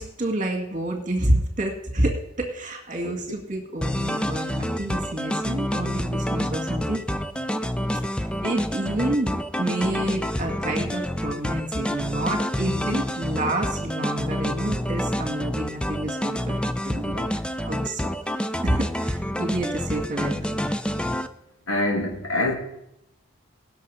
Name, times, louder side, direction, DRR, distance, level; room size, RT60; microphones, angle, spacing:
voice 1, 0.0-7.5 8.2-17.3 17.7-18.0 18.5-20.4, right 1 dB, 40° right, 2 dB, 1.9 m, -28 dB
sound 1, 3.8-21.3, equal, 5° left, 0.4 m, -28 dB
voice 2, 21.7-22.5, left 2 dB, 90° left, 1 dB, 2.8 m, -25 dB
18.5 x 6.7 x 5.6 m, 0.83 s
head